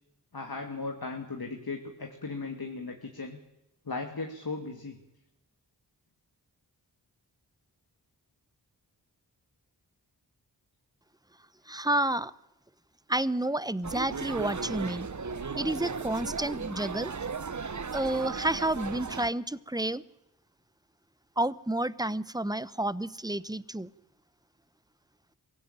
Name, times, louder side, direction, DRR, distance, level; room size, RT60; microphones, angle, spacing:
voice 1, 0.3-3.4 3.8-5.0, left 3 dB, 60° left, 3 dB, 2.8 m, -37 dB
voice 2, 11.7-12.3 13.1-15.1 15.6-17.1 17.9-20.0 21.4-23.9, right 1 dB, 10° right, 18 dB, 0.9 m, -30 dB
sound 1, 13.8-19.3, right 5 dB, 45° right, 1.1 m, -36 dB
23.5 x 16.0 x 9.1 m, 0.89 s
cardioid pair, 40°, 42 cm